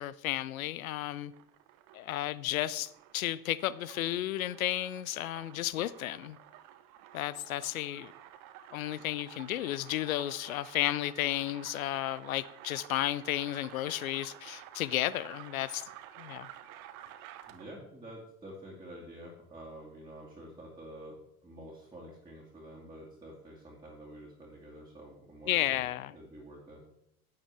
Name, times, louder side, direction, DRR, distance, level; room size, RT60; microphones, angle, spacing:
voice 1, 0.0-1.3 1.9-6.4 7.1-8.1 8.7-15.8 16.2-16.5 25.5-26.2, left 14 dB, 60° left, 0.5 m, -33 dB
sound 1, 1.2-17.8, right 11 dB, 45° right, 0.8 m, -52 dB
voice 2, 17.5-26.8, right 1 dB, 10° right, 2.3 m, -48 dB
11.5 x 8.7 x 3.4 m
figure-of-eight pair, 75°, 47 cm